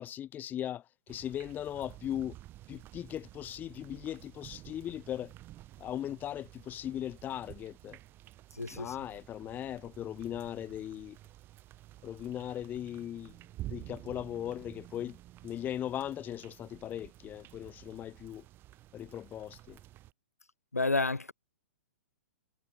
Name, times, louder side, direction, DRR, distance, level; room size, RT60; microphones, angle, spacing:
voice 1, 0.0-2.4 2.7-5.3 5.8-8.0 8.7-11.2 12.0-13.3 13.7-15.2 15.4-18.4 18.9-19.8, left 11 dB, 20° left, 4.3 m, -38 dB
Gentle Rain with Thunder, 1.1-20.1, right 15 dB, 25° right, 4.5 m, -51 dB
voice 2, 8.6-8.9 20.7-21.3, left 3 dB, 85° left, 2.7 m, -30 dB
figure-of-eight pair, 110°, 8 cm